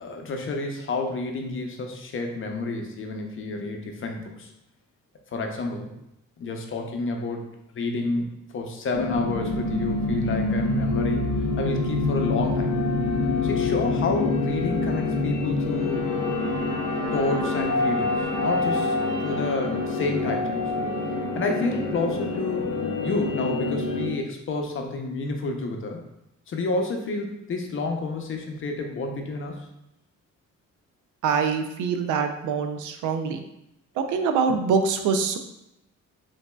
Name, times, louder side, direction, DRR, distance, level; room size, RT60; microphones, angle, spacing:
voice 1, 0.0-4.5 5.3-5.9 6.4-7.4 7.7-12.7 13.4-16.1 17.1-20.6 21.3-26.0 26.5-29.6, left 3 dB, 45° left, 3 dB, 0.6 m, -29 dB
sound 1, 8.9-24.1, left 3 dB, 90° left, 0.6 m, -26 dB
sound 2, 15.7-21.9, right 4 dB, 55° right, 0.9 m, -36 dB
voice 2, 31.2-33.4 34.0-35.4, right 5 dB, 80° right, 6 dB, 0.5 m, -24 dB
3.9 x 2.6 x 2.2 m, 0.84 s
cardioid pair, 90°, 30 cm